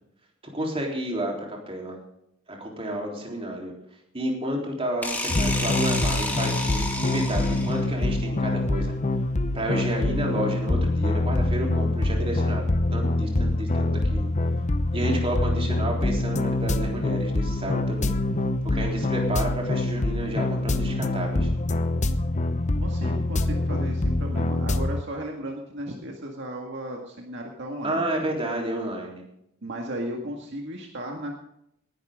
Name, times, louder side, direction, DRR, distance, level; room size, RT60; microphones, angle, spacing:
voice 1, 0.5-2.0 2.5-3.7 4.1-8.9 9.5-14.3 14.9-18.1 18.6-21.5 27.8-29.2, right 1 dB, 30° right, 0 dB, 3.7 m, -30 dB
sound 1, 5.0-7.9, left 2 dB, 10° left, 2.3 m, -30 dB
sound 2, 5.3-25.0, left 2 dB, 35° left, 0.7 m, -25 dB
voice 2, 22.8-28.1 29.6-31.3, right 1 dB, 60° right, 1 dB, 2.0 m, -35 dB
19.0 x 11.5 x 3.8 m, 0.75 s
head